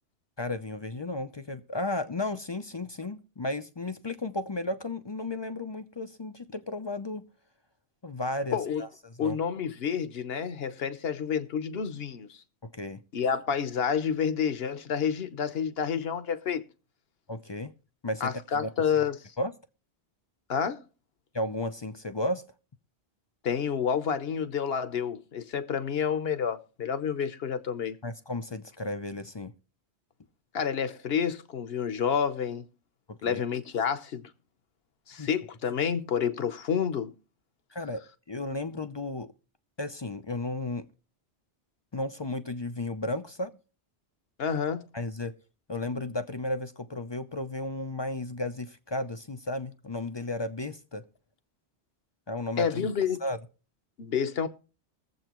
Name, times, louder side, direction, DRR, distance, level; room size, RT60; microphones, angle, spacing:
voice 1, 0.4-7.2 8.0-9.4 12.7-13.0 17.3-17.7 18.0-18.7 19.4-19.5 21.3-22.4 28.0-29.5 33.1-33.4 35.2-35.3 37.7-39.3 39.8-40.9 41.9-43.5 44.9-45.3 45.7-51.0 52.3-52.9 53.2-53.4, left 2 dB, 30° left, 0.5 m, -34 dB
voice 2, 8.5-8.8 9.2-12.4 13.1-16.6 18.2-19.2 20.5-20.8 23.4-28.0 30.5-32.6 33.2-34.3 35.1-37.1 44.4-44.9 52.6-53.2 54.0-54.5, left 7 dB, 60° left, 1.1 m, -29 dB
22.5 x 7.7 x 3.0 m
omnidirectional pair, 1.2 m